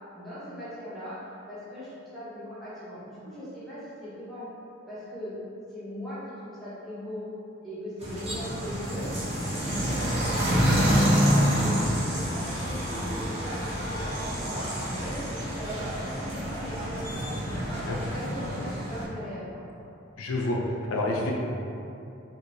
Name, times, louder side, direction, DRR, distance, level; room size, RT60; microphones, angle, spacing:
voice 1, 0.1-1.2 1.5-4.5 4.9-5.4 5.7-7.3 7.6-14.6 14.9-17.4 17.9-19.6, equal, ahead, -12 dB, 0.9 m, -39 dB
sound 1, 8.0-19.0, equal, 30° right, 0.8 m, -27 dB
voice 2, 20.2-20.6 20.9-21.3, left 2 dB, 85° left, -1 dB, 0.5 m, -28 dB
2.9 x 2.9 x 3.0 m, 2.7 s
head